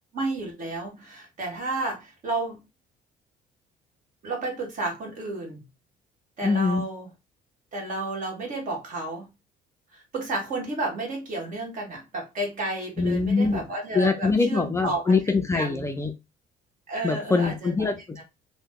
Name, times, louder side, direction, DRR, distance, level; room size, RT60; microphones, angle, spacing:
voice 1, 0.1-2.6 4.2-5.6 6.4-7.1 7.7-9.3 9.9-15.1 15.5-15.8 16.9-18.2, right 2 dB, 50° right, 1.4 m, -32 dB
voice 2, 6.4-6.8 13.0-13.6 13.9-16.1 17.0-18.2, left 4 dB, 15° left, 0.4 m, -23 dB
2.8 x 2.1 x 3.6 m
cardioid pair, 110°, 17 cm